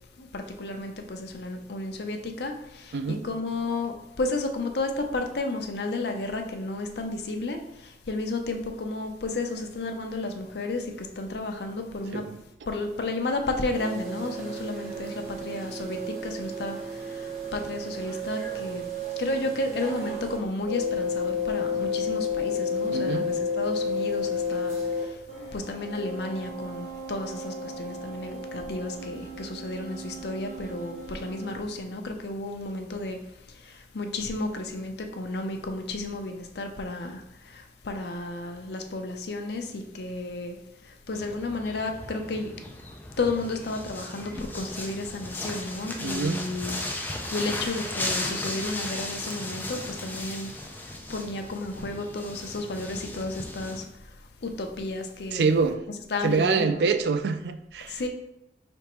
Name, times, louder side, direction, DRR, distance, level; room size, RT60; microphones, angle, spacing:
voice 1, 0.2-12.3 12.7-18.8 19.2-25.2 25.5-33.2 33.5-40.6 40.8-42.5 43.2-46.8 47.3-54.1 54.4-55.6 55.9-56.9 57.9-58.1, left 2 dB, 65° left, 0.6 m, -32 dB
sound 1, 13.7-20.4 20.7-25.0 25.3-31.5, left 2 dB, 40° right, 1.2 m, -32 dB
voice 2, 22.9-23.3 46.0-46.4 55.3-55.8 56.2-57.9, right 4 dB, 70° right, 0.3 m, -25 dB
sound 2, 41.1-53.8, left 1 dB, 10° left, 0.4 m, -36 dB
5.0 x 3.5 x 3.0 m
head